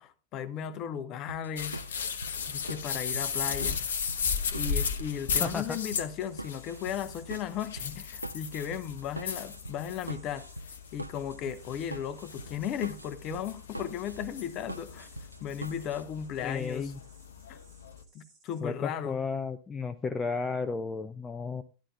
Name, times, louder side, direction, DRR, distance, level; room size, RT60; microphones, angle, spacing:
voice 1, 0.0-2.1 2.5-3.8 4.5-10.5 10.9-15.1 15.4-16.9 17.5-17.6 18.1-19.2, left 9 dB, 35° left, 0.9 m, -36 dB
sound 1, 1.3-16.0, right 2 dB, 85° right, 0.4 m, -43 dB
sound 2, 1.6-18.0, left 6 dB, 65° left, 0.8 m, -36 dB
voice 2, 5.4-5.8 16.4-17.0 18.6-21.6, left 4 dB, 15° left, 0.5 m, -33 dB
sound 3, 6.0-18.6, right 4 dB, 35° right, 2.6 m, -63 dB
12.5 x 11.0 x 2.5 m
figure-of-eight pair, 90°, 0 cm